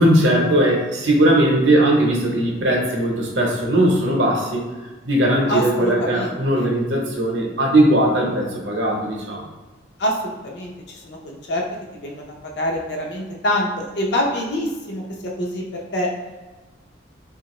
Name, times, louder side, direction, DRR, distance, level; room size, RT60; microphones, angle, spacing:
voice 1, 0.0-4.7 5.0-9.5, right 1 dB, 70° right, -1 dB, 0.7 m, -18 dB
voice 2, 5.5-6.7 10.0-11.6 12.0-15.0 15.4-16.1, left 1 dB, 60° left, -1 dB, 0.6 m, -25 dB
2.9 x 2.3 x 3.0 m, 1.2 s
head